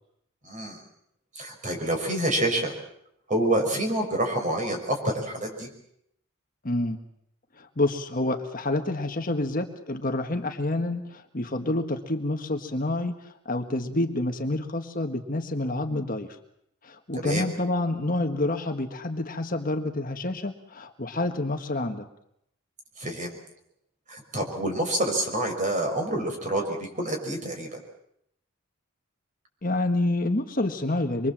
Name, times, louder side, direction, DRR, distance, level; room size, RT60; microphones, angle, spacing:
voice 1, 0.4-0.8 1.3-2.7 3.3-5.7 17.1-17.5 23.0-23.4 24.1-27.8, right 1 dB, 35° right, 3 dB, 5.9 m, -27 dB
voice 2, 6.6-7.0 7.6-16.3 16.8-22.1 29.6-31.3, left 2 dB, 40° left, 5 dB, 1.5 m, -28 dB
26.0 x 23.0 x 7.5 m, 0.76 s
head